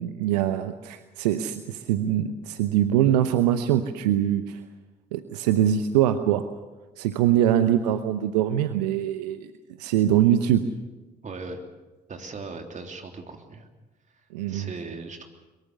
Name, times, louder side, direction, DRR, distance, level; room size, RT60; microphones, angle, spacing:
voice 1, 0.0-4.6 5.1-6.4 7.0-9.5 9.8-10.7 14.3-14.7, right 11 dB, 75° right, 11 dB, 0.8 m, -23 dB
voice 2, 11.2-11.6 12.1-13.7 14.5-15.3, right 3 dB, 35° right, 4 dB, 3.2 m, -38 dB
22.5 x 22.5 x 7.0 m, 1.1 s
figure-of-eight pair, 50°, 21 cm